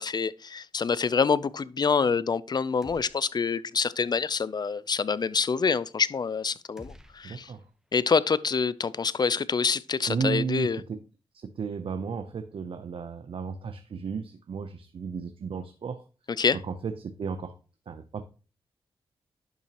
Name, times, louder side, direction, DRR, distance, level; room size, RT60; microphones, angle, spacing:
voice 1, 0.0-7.5 7.9-10.8 16.4-16.6, left 5 dB, 45° left, 0.5 m, -26 dB
sound 1, 2.8-3.7 4.0-4.1 6.8-8.1, equal, 5° right, 1.1 m, -52 dB
voice 2, 7.2-7.7 10.1-11.0 11.3-16.0 16.5-17.5 17.9-18.2, right 5 dB, 65° right, 0.7 m, -34 dB
11.0 x 5.7 x 3.0 m
cardioid pair, 55°, 10 cm